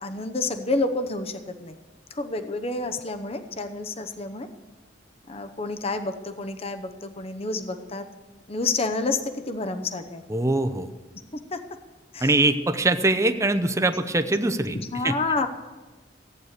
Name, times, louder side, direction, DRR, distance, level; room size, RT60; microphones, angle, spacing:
voice 1, 0.0-1.8 2.1-4.5 5.3-8.0 8.5-10.2 11.5-11.6 12.1-12.4 14.7-15.5, left 3 dB, 30° left, 8 dB, 0.8 m, -29 dB
voice 2, 10.3-10.9 12.2-14.8 15.0-15.2, right 2 dB, 15° right, 9 dB, 0.7 m, -22 dB
15.0 x 9.4 x 6.6 m, 1.2 s
head